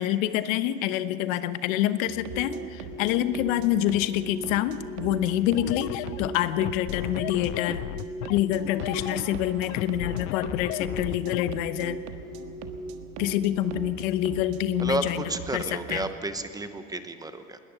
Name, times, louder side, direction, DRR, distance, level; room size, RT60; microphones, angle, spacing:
voice 1, 0.0-7.8 8.3-12.0 13.2-15.2 15.5-16.1, left 13 dB, 90° left, 12 dB, 1.1 m, -27 dB
sound 1, 1.9-2.4 2.8-3.3 3.8-4.3 4.7-5.2 5.7-6.2 6.6-7.1 7.5-8.0 8.5-9.0 9.4-9.9 10.3-10.8 11.3-11.8 12.2-12.7 13.2-13.7 14.1-14.6, left 4 dB, 30° left, 3.3 m, -42 dB
sound 2, 2.1-16.2, right 8 dB, 80° right, 1.6 m, -42 dB
sound 3, 5.5-11.5, left 20 dB, 70° left, 0.5 m, -34 dB
voice 2, 14.8-17.6, right 2 dB, 10° right, 9 dB, 0.8 m, -32 dB
20.0 x 19.0 x 6.8 m, 2.8 s
cardioid pair, 150°, 39 cm